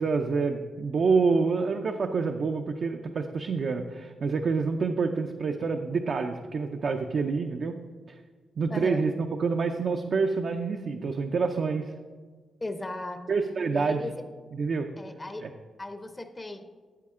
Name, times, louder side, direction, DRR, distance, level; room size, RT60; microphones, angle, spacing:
voice 1, 0.0-7.8 8.1-8.2 8.6-9.1 9.4-11.9 13.3-14.1 14.6-14.9 15.4-15.5, right 4 dB, 55° right, 4 dB, 0.6 m, -27 dB
voice 2, 8.7-9.0 12.6-13.2 13.7-14.2 15.0-15.5 15.8-16.7, left 2 dB, 20° left, 9 dB, 0.7 m, -36 dB
13.0 x 8.0 x 3.7 m, 1.5 s
wide cardioid pair, 120°, 0 cm